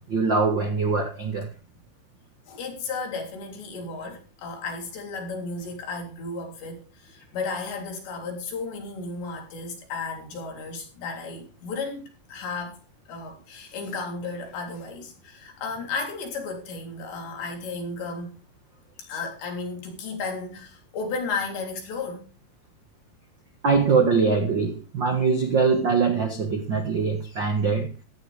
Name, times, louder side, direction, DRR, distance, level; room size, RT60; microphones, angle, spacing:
voice 1, 0.0-1.5 23.6-27.9, right 4 dB, 65° right, 1.1 m, -23 dB
voice 2, 2.5-12.8 13.1-18.3 19.1-22.2, left 4 dB, 90° left, 5.7 m, -34 dB
15.0 x 13.0 x 3.4 m
omnidirectional pair, 4.9 m